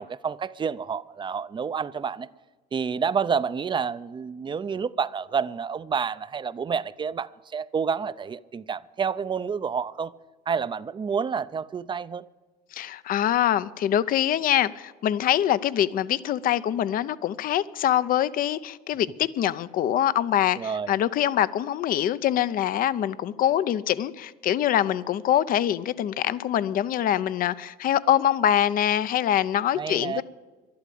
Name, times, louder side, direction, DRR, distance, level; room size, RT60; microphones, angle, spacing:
voice 1, 0.0-2.3 2.7-10.1 10.5-12.2 20.6-20.9 29.8-30.2, right 6 dB, 30° right, 0.5 m, -29 dB
voice 2, 12.7-30.2, left 11 dB, 55° left, 0.6 m, -24 dB
11.5 x 11.5 x 8.5 m
cardioid pair, 110°, 17 cm